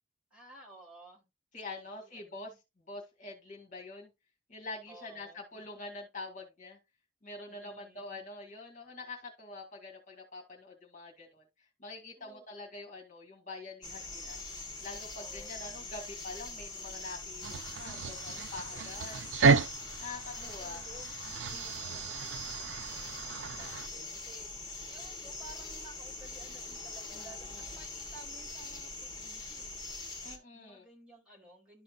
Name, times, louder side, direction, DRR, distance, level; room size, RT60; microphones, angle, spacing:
voice 1, 0.3-1.3 1.6-2.6 4.9-5.6 7.5-8.2 12.2-12.5 15.1-15.7 18.7-19.4 20.3-24.5 24.9-29.8 30.5-31.8, right 1 dB, 5° right, 3.3 m, -55 dB
voice 2, 1.5-4.1 4.5-6.8 7.2-14.4 14.8-19.6 20.0-20.8 21.5-22.0 27.1-27.8 30.2-30.9, left 3 dB, 45° left, 2.1 m, -46 dB
sound 1, 13.8-30.4, left 3 dB, 25° left, 2.4 m, -43 dB
sound 2, 17.4-23.9, right 5 dB, 75° right, 0.4 m, -32 dB
12.5 x 4.2 x 2.5 m
head